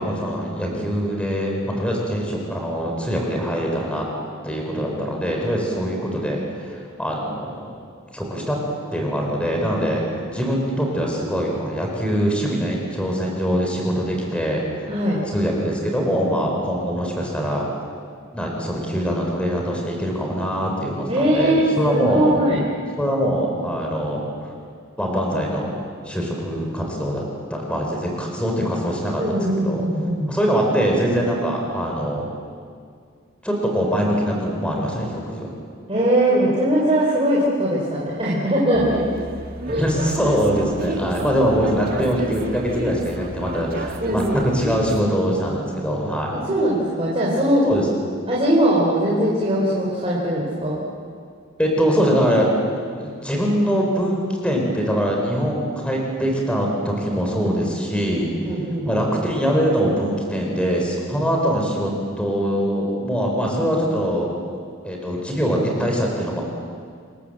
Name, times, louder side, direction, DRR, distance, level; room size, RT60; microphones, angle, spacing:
voice 1, 0.0-4.1 4.4-7.7 8.1-8.6 8.9-10.0 10.3-14.9 15.3-17.6 18.3-22.4 23.0-24.2 25.0-25.8 26.0-27.2 27.5-29.8 30.3-32.3 33.4-35.5 39.7-46.4 47.6-47.9 51.6-52.5 53.0-58.3 58.8-61.9 62.2-64.3 64.8-66.4, equal, 5° left, 0 dB, 4.4 m, -23 dB
voice 2, 14.9-15.2 21.1-22.6 29.2-30.3 35.9-39.0 39.7-39.8 41.2-41.3 44.0-44.5 46.3-47.6 48.3-50.8 58.5-58.9, right 1 dB, 30° right, -6 dB, 4.1 m, -20 dB
sound 1, 38.7-45.0, right 2 dB, 45° right, 1.5 m, -32 dB
27.5 x 20.5 x 7.9 m, 2.1 s
head